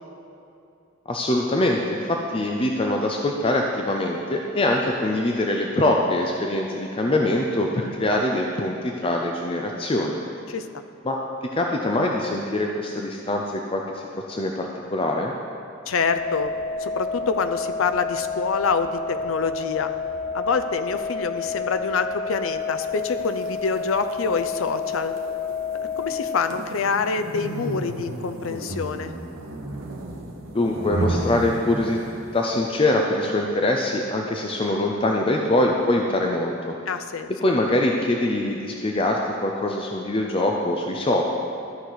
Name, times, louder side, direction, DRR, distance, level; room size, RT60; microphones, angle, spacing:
voice 1, 1.1-10.2 11.0-11.2 11.5-14.0 14.3-15.3 30.5-32.1 32.3-36.7 37.4-41.2, left 1 dB, 25° left, 1 dB, 0.5 m, -23 dB
voice 2, 15.9-16.5 16.8-19.0 19.2-19.9 20.3-25.1 26.0-29.1 36.9-37.3, left 5 dB, 75° left, 9 dB, 0.5 m, -26 dB
sound 1, 16.0-26.4, left 5 dB, 10° left, 1.5 m, -30 dB
sound 2, 23.1-32.4, right 2 dB, 80° right, 1.1 m, -33 dB
13.0 x 6.4 x 4.0 m, 2.7 s
head